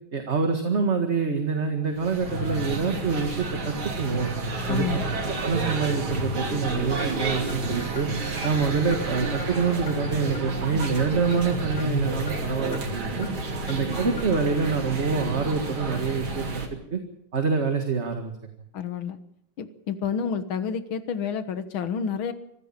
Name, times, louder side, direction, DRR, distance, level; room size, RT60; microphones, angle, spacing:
voice 1, 0.1-4.3 4.7-4.8 5.4-8.1 8.4-13.3 13.7-16.4 16.9-17.0 17.3-18.3, right 5 dB, 35° right, 4 dB, 2.1 m, -26 dB
sound 1, 1.9-16.7, right 3 dB, 90° right, 3.8 m, -30 dB
voice 2, 4.7-5.1 18.7-19.2 19.6-22.3, left 7 dB, 80° left, 10 dB, 2.2 m, -29 dB
Clock, 7.0-7.1 7.5-7.6 8.0-8.1 8.4-8.6 8.9-9.0 9.4-9.5 9.9-10.0 10.3-10.5 10.8-10.9 11.3-11.4 11.8-11.9 12.3-12.4 12.7-12.9 13.2-13.3 13.7-13.8 14.2-14.3, left 7 dB, 25° left, 1.7 m, -41 dB
25.0 x 15.0 x 7.4 m, 0.75 s
omnidirectional pair, 2.2 m